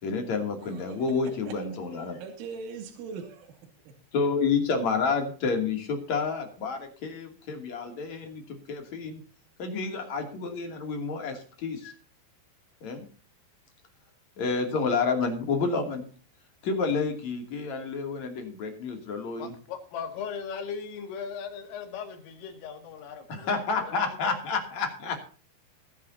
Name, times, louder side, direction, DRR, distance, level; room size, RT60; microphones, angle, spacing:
voice 1, 0.0-2.2 4.1-9.2 9.6-11.9 12.8-13.1 14.4-16.0 16.6-19.5 23.3-25.2, left 4 dB, 40° left, 3 dB, 3.2 m, -29 dB
voice 2, 0.6-1.1 1.5-1.6 2.2-3.6, right 5 dB, 70° right, 3 dB, 4.7 m, -40 dB
voice 3, 19.4-24.2, left 6 dB, 75° left, 5 dB, 4.7 m, -38 dB
21.5 x 10.5 x 2.8 m, 0.40 s
omnidirectional pair, 5.9 m